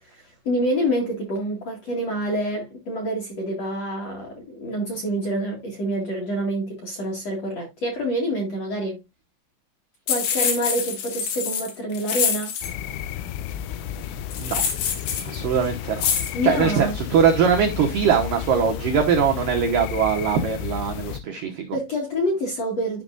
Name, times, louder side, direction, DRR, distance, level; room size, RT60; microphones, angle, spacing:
voice 1, 0.1-9.0 10.1-12.5 16.3-17.0 21.7-23.0, equal, 50° left, 2.1 m, -27 dB
sound 1, 10.1-12.7 14.3-15.4 16.0-16.3, left 7 dB, 65° left, 3.4 m, -25 dB
sound 2, 12.6-21.2, left 10 dB, 80° left, 3.0 m, -32 dB
voice 2, 15.2-16.1 16.4-21.8, right 7 dB, 80° right, 1.9 m, -21 dB
12.5 x 5.4 x 2.5 m
omnidirectional pair, 5.5 m